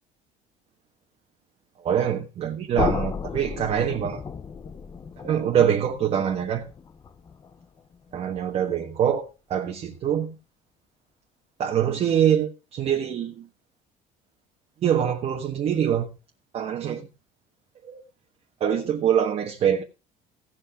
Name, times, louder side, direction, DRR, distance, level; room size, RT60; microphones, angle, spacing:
voice 1, 1.8-4.2 5.2-6.7 8.1-10.3 11.6-13.4 14.8-16.1 16.5-17.1 17.9-18.0 18.6-19.8, right 9 dB, 45° right, 1.4 m, -24 dB
sound 1, 2.7-8.6, left 6 dB, 25° left, 0.8 m, -34 dB
16.5 x 5.9 x 4.9 m
cardioid pair, 135°, 15 cm